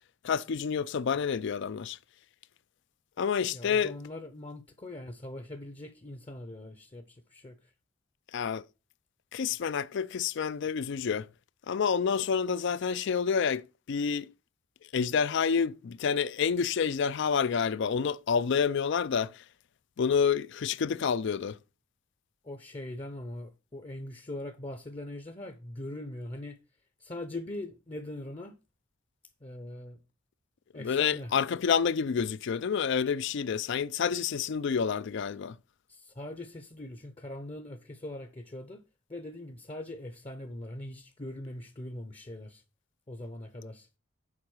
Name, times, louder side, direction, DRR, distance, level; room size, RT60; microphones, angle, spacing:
voice 1, 0.2-2.0 3.2-3.9 8.3-8.6 9.3-11.3 11.7-14.3 14.9-19.3 20.0-21.6 30.8-35.5, left 6 dB, 55° left, 0.4 m, -28 dB
voice 2, 3.5-7.7 22.4-26.6 27.0-28.6 29.4-30.0 30.7-31.3 35.9-38.8 39.1-42.6 43.1-43.9, left 1 dB, 25° left, 0.7 m, -41 dB
7.4 x 4.8 x 6.3 m
head